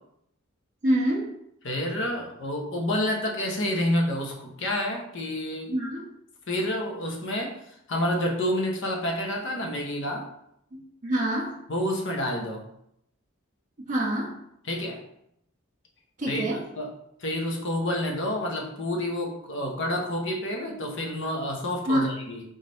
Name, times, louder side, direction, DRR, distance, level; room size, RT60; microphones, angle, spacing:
voice 1, 0.8-1.3 5.7-6.1 10.7-11.5 13.9-14.3 16.2-16.6 21.9-22.1, right 1 dB, 40° right, -3 dB, 1.5 m, -26 dB
voice 2, 1.6-5.7 6.5-10.3 11.7-12.6 14.6-15.0 16.3-16.5 16.8-16.9 17.2-22.4, left 1 dB, 65° left, 1 dB, 0.9 m, -29 dB
4.0 x 3.3 x 4.0 m, 0.76 s
head